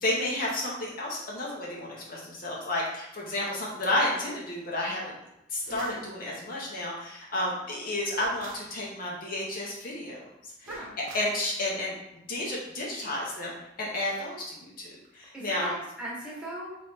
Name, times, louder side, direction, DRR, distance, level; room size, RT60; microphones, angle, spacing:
voice 1, 0.0-5.1 5.5-10.7 11.0-12.0 12.3-15.7, left 1 dB, 45° left, -3 dB, 0.8 m, -31 dB
sound 1, 5.6-6.1 8.1-8.8 10.6-11.4, right 3 dB, 75° right, 0.5 m, -45 dB
voice 2, 5.7-6.1 10.7-10.9 15.3-16.8, right 1 dB, 5° right, -7 dB, 1.1 m, -39 dB
3.2 x 3.0 x 4.2 m, 0.84 s
head